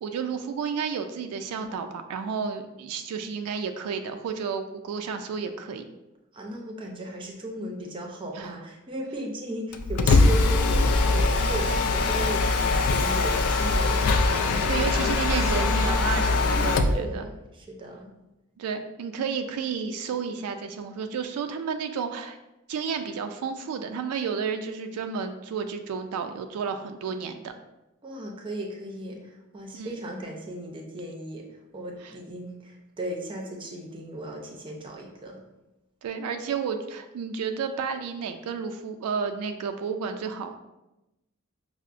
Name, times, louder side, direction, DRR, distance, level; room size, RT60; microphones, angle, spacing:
voice 1, 0.0-5.8 8.3-8.5 14.7-17.3 18.6-22.4 22.7-27.5 29.7-30.0 32.0-32.1 36.0-40.5, right 6 dB, 85° right, 6 dB, 0.3 m, -31 dB
voice 2, 6.3-14.0 14.4-14.5 15.2-16.0 16.4-18.1 28.0-31.5 31.7-35.4, right 1 dB, 25° right, 1 dB, 0.5 m, -36 dB
Mechanisms, 9.7-17.0, left 3 dB, 85° left, 0.3 m, -22 dB
5.5 x 2.0 x 2.4 m, 0.95 s
head